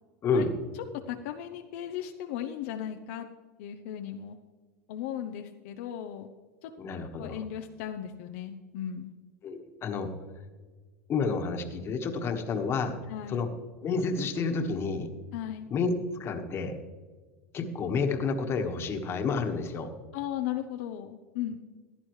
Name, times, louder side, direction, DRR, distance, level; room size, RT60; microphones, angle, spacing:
voice 1, 0.2-0.5 6.8-7.4 9.4-10.1 11.1-13.0 13.3-13.5 13.8-15.1 15.7-15.9 16.2-16.7 17.5-19.9, left 4 dB, 35° left, 5 dB, 1.5 m, -29 dB
voice 2, 0.9-3.3 3.6-4.4 4.9-6.3 6.6-6.7 7.2-9.1 13.1-13.5 15.3-15.7 20.1-21.6, left 10 dB, 70° left, 5 dB, 0.7 m, -36 dB
15.0 x 11.0 x 3.2 m, 1.4 s
supercardioid pair, 115°, 7 cm